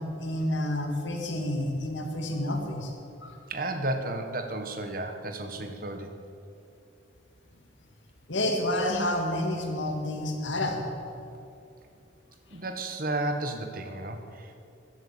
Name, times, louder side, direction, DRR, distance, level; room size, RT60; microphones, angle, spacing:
voice 1, 0.0-2.9 3.2-3.3 8.3-10.8, left 1 dB, 75° left, 3 dB, 2.3 m, -29 dB
voice 2, 3.5-6.1 12.5-14.7, right 2 dB, 45° right, 6 dB, 1.3 m, -33 dB
14.5 x 10.5 x 8.6 m, 2.6 s
head